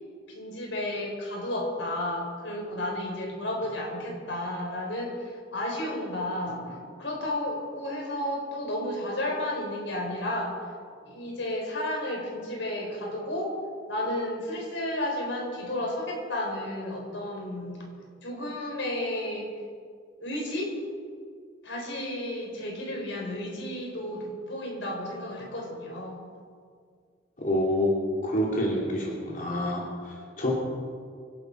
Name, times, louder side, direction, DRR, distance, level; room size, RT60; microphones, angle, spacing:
voice 1, 0.3-10.6 11.0-13.6 13.9-17.8 18.2-19.5 20.2-20.8 21.6-26.2, left 1 dB, 85° left, 0 dB, 4.4 m, -32 dB
voice 2, 27.4-27.9 28.2-30.5, left 1 dB, 45° left, -3 dB, 2.9 m, -27 dB
25.0 x 12.0 x 4.7 m, 2.1 s
head